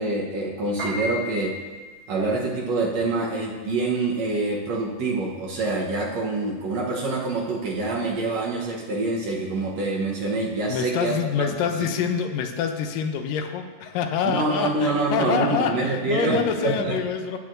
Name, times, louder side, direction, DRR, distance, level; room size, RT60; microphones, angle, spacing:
voice 1, 0.0-1.6 2.1-11.7 14.3-16.9, right 3 dB, 65° right, -3 dB, 1.9 m, -26 dB
Piano, 0.6-11.0, left 1 dB, 30° right, 3.5 m, -38 dB
voice 2, 10.7-17.4, left 7 dB, 90° left, 6 dB, 2.4 m, -26 dB
15.5 x 8.1 x 2.6 m, 1.4 s
omnidirectional pair, 3.9 m